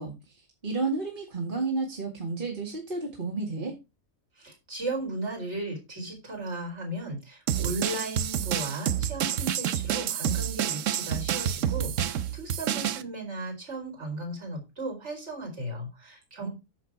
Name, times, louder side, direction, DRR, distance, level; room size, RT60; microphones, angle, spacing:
voice 1, 0.0-3.8 16.4-16.5, right 3 dB, 35° right, -1 dB, 2.4 m, -32 dB
voice 2, 4.4-16.5, right 1 dB, 50° right, 1 dB, 4.7 m, -36 dB
sound 1, 7.5-13.0, right 10 dB, 70° right, 1.0 m, -28 dB
10.0 x 6.7 x 4.8 m, 0.26 s
omnidirectional pair, 1.5 m